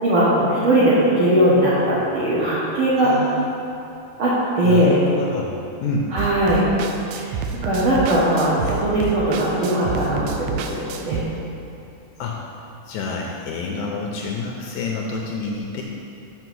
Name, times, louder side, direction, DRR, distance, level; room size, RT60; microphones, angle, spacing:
voice 1, 0.0-3.1 4.2-5.0 6.1-6.6 7.1-7.4 7.6-11.2, right 1 dB, 60° right, -8 dB, 1.4 m, -19 dB
voice 2, 3.0-3.5 4.6-5.5 5.8-6.1 12.2-12.4 12.9-15.8, left 3 dB, 80° left, -1 dB, 1.8 m, -28 dB
sound 1, 6.2-11.2, right 6 dB, 85° right, 1.7 m, -29 dB
6.9 x 6.0 x 6.1 m, 2.7 s
omnidirectional pair, 3.9 m